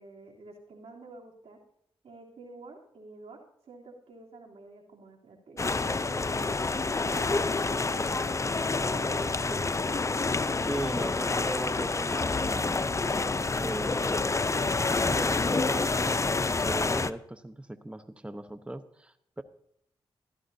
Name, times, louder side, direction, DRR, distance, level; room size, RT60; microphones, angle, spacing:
voice 1, 0.0-1.6 2.0-3.4 3.7-6.6 7.1-9.8, right 2 dB, 85° right, -2 dB, 3.1 m, -47 dB
sound 1, 5.6-17.1, left 3 dB, 30° left, 0.5 m, -28 dB
voice 2, 10.7-12.8 13.6-14.6 14.9-19.4, right 1 dB, 10° right, 10 dB, 0.9 m, -38 dB
15.5 x 13.0 x 2.7 m, 0.71 s
cardioid pair, 55°, 10 cm